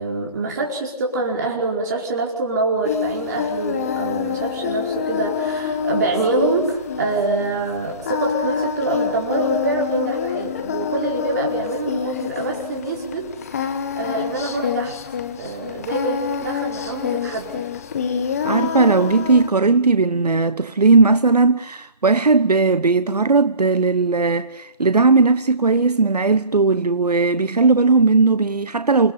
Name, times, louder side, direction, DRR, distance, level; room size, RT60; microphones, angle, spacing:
voice 1, 0.0-15.0 15.4-17.6, right 2 dB, 25° right, 4.9 m, -25 dB
Singing, 2.8-19.5, left 7 dB, 20° left, 1.5 m, -27 dB
voice 2, 18.4-29.1, right 4 dB, 70° right, 1.2 m, -17 dB
28.5 x 18.0 x 8.6 m
figure-of-eight pair, 160°, 21 cm